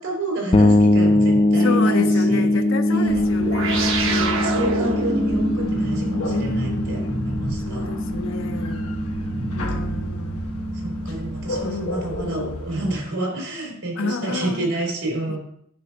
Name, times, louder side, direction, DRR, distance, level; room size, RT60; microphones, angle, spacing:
voice 1, 0.0-2.5 2.9-3.4 4.0-8.0 9.3-9.5 10.7-15.4, right 2 dB, 90° right, -1 dB, 3.5 m, -29 dB
sound 1, 0.5-10.1, left 2 dB, 25° left, 0.4 m, -22 dB
voice 2, 1.6-4.9 6.2-7.2 7.7-9.0 9.5-10.5 11.6-12.6 14.0-14.7 15.3-15.4, left 3 dB, 65° left, 8 dB, 0.7 m, -30 dB
sound 2, 3.0-13.0, left 1 dB, 85° left, 1.1 m, -34 dB
sound 3, 3.4-12.2, right 2 dB, 65° right, 1.1 m, -28 dB
9.7 x 3.4 x 6.1 m, 0.69 s
head